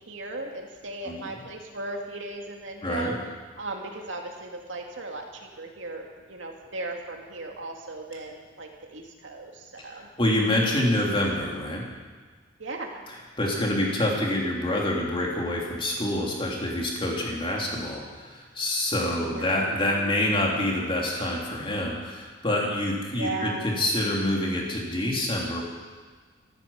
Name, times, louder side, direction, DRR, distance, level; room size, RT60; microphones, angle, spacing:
voice 1, 0.0-3.2 3.6-10.1 12.6-13.0 19.1-20.0 23.1-23.7, right 2 dB, 75° right, 1 dB, 2.4 m, -37 dB
voice 2, 2.8-3.1 9.9-11.9 13.1-25.6, left 1 dB, 25° left, -2 dB, 3.1 m, -27 dB
14.5 x 13.5 x 7.2 m, 1.4 s
head